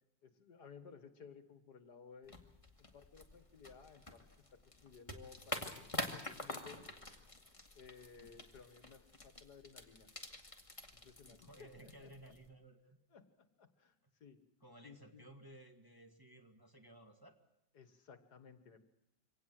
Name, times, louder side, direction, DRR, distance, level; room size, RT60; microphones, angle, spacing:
voice 1, 0.2-2.4 2.8-4.2 4.5-6.9 7.7-10.1 10.9-12.1 13.1-14.4 14.8-15.3 17.7-18.8, left 6 dB, 65° left, 10 dB, 2.2 m, -58 dB
sound 1, 2.2-12.5, left 2 dB, 20° left, 2.2 m, -47 dB
voice 2, 11.2-13.0 14.6-17.4, right 1 dB, 10° right, 3 dB, 2.0 m, -58 dB
25.0 x 18.0 x 7.7 m, 0.84 s
omnidirectional pair, 1.9 m